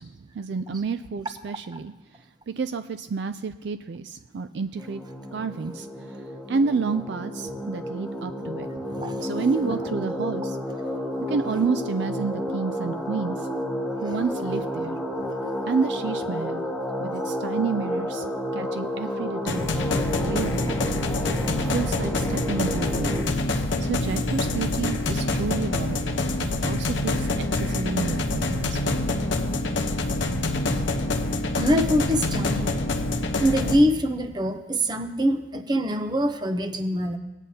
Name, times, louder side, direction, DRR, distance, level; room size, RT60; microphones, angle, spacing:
voice 1, 0.0-1.9 2.5-5.0 5.3-6.1 6.5-8.7 9.0-10.6 11.3-13.4 14.0-15.0 15.7-16.6 17.0-18.2 18.5-19.7 20.2-20.8 21.6-23.2 23.8-26.1 26.4-29.0, right 5 dB, 60° right, 10 dB, 0.4 m, -30 dB
sound 1, 4.8-23.2, equal, ahead, 1.3 m, -31 dB
sound 2, 19.5-33.8, left 2 dB, 70° left, 0.9 m, -26 dB
voice 2, 31.5-32.8 33.4-37.2, equal, 20° right, 7 dB, 0.7 m, -24 dB
19.5 x 9.0 x 2.8 m, 1.1 s
head